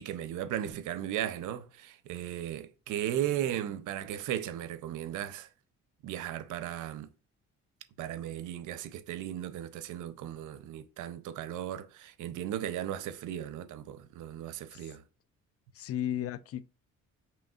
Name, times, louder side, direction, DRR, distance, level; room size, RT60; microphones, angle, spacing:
voice 1, 0.0-5.5 6.0-7.1 8.0-15.0, right 11 dB, 85° right, 0.6 m, -36 dB
voice 2, 15.7-16.6, left 11 dB, 50° left, 0.4 m, -34 dB
5.2 x 3.1 x 2.4 m
cardioid pair, 90°, 30 cm